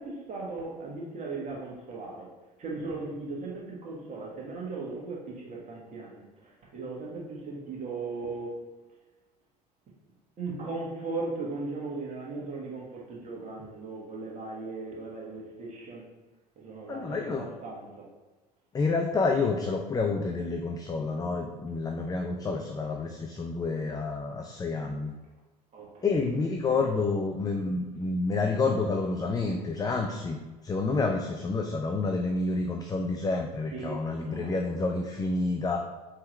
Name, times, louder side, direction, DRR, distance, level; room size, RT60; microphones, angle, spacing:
voice 1, 0.0-2.3 2.6-8.6 10.4-16.1 16.5-18.1 25.7-26.1 26.7-26.8 29.5-30.0 33.7-34.9, right 3 dB, 35° right, -3 dB, 1.5 m, -38 dB
voice 2, 16.9-17.5 18.7-25.1 26.0-35.8, left 3 dB, 20° left, 3 dB, 0.4 m, -29 dB
4.3 x 3.6 x 3.1 m, 1.2 s
hypercardioid pair, 70°, 20 cm